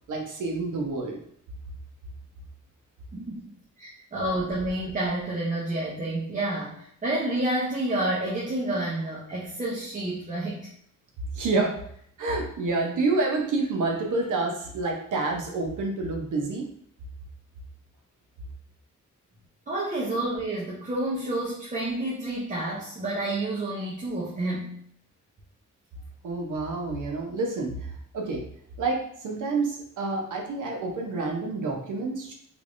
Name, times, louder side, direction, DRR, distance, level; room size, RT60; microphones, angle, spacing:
voice 1, 0.1-1.2 11.3-11.8 12.2-16.7 26.2-28.4 28.8-32.3, right 3 dB, 75° right, 1 dB, 0.8 m, -28 dB
voice 2, 3.1-3.5 3.8-10.7 19.7-24.8, right 1 dB, 25° right, -6 dB, 0.7 m, -29 dB
3.4 x 3.1 x 2.5 m, 0.67 s
wide cardioid pair, 140°, 31 cm